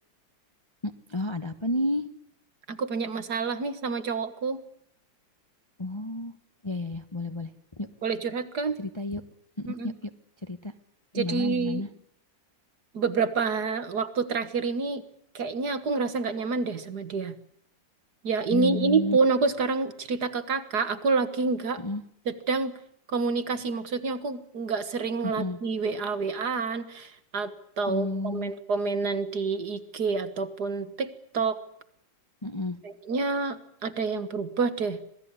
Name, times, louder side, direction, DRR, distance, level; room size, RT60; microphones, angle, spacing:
voice 1, 0.8-2.1 5.8-6.3 6.6-7.9 8.8-9.2 9.6-10.1 10.4-10.7 11.1-11.9 18.5-19.2 21.8-22.0 25.2-25.6 27.9-28.5 32.4-32.8, left 1 dB, 20° left, 8 dB, 1.0 m, -31 dB
voice 2, 2.7-4.6 8.0-8.8 9.7-9.9 11.1-11.8 12.9-15.0 15.3-17.3 18.2-21.8 22.3-22.7 23.1-31.6 32.8-35.0, right 4 dB, 55° right, 11 dB, 2.1 m, -28 dB
26.5 x 18.5 x 9.6 m, 0.69 s
omnidirectional pair, 2.1 m